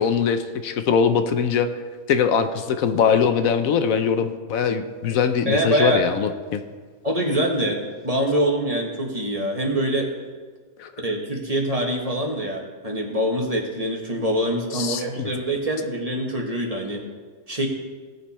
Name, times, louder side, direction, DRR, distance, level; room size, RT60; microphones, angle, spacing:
voice 1, 0.0-1.7 2.1-6.6 10.8-10.9 14.7-15.3, left 7 dB, 75° left, 9 dB, 1.1 m, -22 dB
voice 2, 5.5-6.0 7.0-7.8 8.0-10.1 11.0-17.0 17.5-17.7, right 1 dB, 25° right, -1 dB, 1.6 m, -24 dB
17.5 x 6.8 x 4.3 m, 1.5 s
omnidirectional pair, 1.5 m